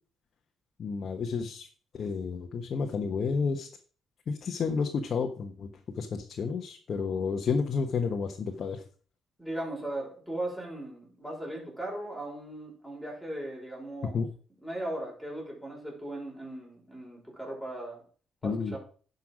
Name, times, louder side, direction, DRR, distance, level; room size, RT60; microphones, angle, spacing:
voice 1, 0.8-1.7 1.9-3.7 4.3-5.7 6.0-8.8 14.1-14.3 18.4-18.8, left 5 dB, 55° left, 1.3 m, -31 dB
voice 2, 9.4-14.2 14.6-18.0 18.4-18.8, right 1 dB, ahead, 5.9 m, -38 dB
10.5 x 5.6 x 6.2 m
cardioid pair, 90°, 0 cm